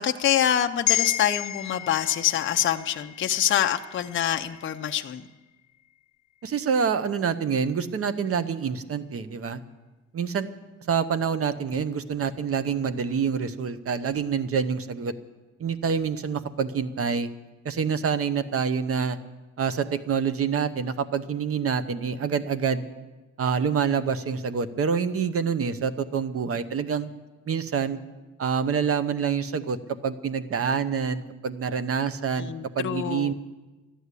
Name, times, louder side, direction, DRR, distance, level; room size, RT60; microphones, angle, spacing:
voice 1, 0.0-5.2 32.4-33.3, left 10 dB, 40° left, 5 dB, 0.5 m, -25 dB
sound 1, 0.9-5.3 5.7-5.9, left 14 dB, 65° left, 1.0 m, -32 dB
voice 2, 6.4-9.6 10.1-10.5 10.9-15.1 15.6-17.3 17.6-19.2 19.6-22.9 23.4-27.1 27.5-28.0 28.4-29.8 30.0-33.3, right 6 dB, 45° right, 14 dB, 0.8 m, -27 dB
12.5 x 11.0 x 8.2 m, 1.2 s
wide cardioid pair, 145°, 31 cm